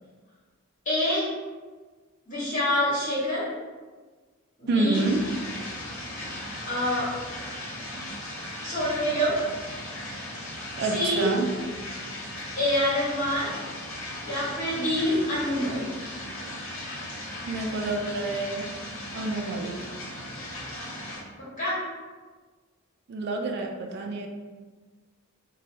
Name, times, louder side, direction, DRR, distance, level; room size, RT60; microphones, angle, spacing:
voice 1, 0.8-1.3 2.3-3.5 4.6-5.1 6.7-7.2 8.6-9.4 10.8-11.3 12.6-13.5 14.2-15.9 21.6-21.8, left 1 dB, 40° left, -9 dB, 1.4 m, -26 dB
voice 2, 4.7-5.2 10.8-11.5 17.5-18.7 19.1-19.9 23.1-24.3, right 3 dB, 55° right, 3 dB, 0.3 m, -28 dB
sound 1, 4.9-21.2, left 1 dB, 75° left, 0.7 m, -37 dB
2.9 x 2.1 x 3.0 m, 1.4 s
head